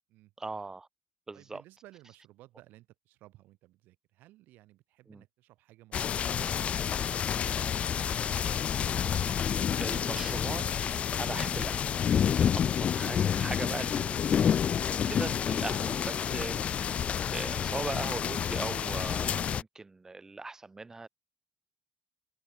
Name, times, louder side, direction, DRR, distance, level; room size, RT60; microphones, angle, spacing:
voice 1, 0.4-0.9 1.3-1.6 5.1-5.2 9.3-14.2 15.1-16.8 17.3-21.1, right 3 dB, 15° right, 0.4 m, -40 dB
voice 2, 1.3-7.5 16.2-16.9, right 17 dB, 80° right, 3.0 m, -57 dB
sound 1, 5.9-19.6, left 8 dB, 40° left, 0.4 m, -29 dB
cardioid pair, 115°, 3 cm